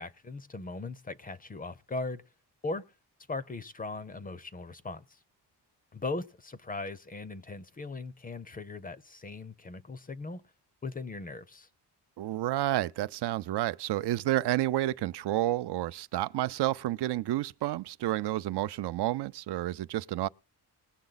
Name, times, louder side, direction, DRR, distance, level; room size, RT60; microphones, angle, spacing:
voice 1, 0.0-2.2 2.6-2.9 3.3-5.2 5.9-10.4 10.8-11.7, left 3 dB, 20° left, 0.5 m, -39 dB
voice 2, 12.2-20.3, right 14 dB, 80° right, 0.5 m, -30 dB
20.0 x 7.0 x 4.0 m
wide cardioid pair, 170°, 40 cm